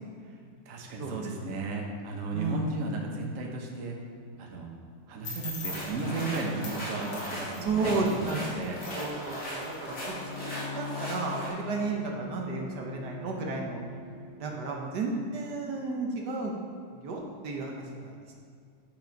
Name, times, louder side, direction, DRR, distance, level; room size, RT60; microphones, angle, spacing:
voice 1, 0.7-3.9 4.4-4.7 5.1-8.2 8.5-8.8, right 3 dB, 50° right, 0 dB, 1.3 m, -34 dB
voice 2, 2.3-2.8 7.6-13.8 14.4-16.5 16.9-18.1, right 3 dB, 70° right, 0 dB, 1.5 m, -33 dB
sound 1, 5.2-10.4, left 3 dB, 85° left, 2.4 m, -43 dB
sound 2, 5.6-11.5, equal, 65° left, 2.8 m, -38 dB
Bowed string instrument, 9.8-14.4, left 5 dB, 15° left, 2.0 m, -42 dB
8.7 x 6.0 x 5.2 m, 2.3 s
omnidirectional pair, 1.9 m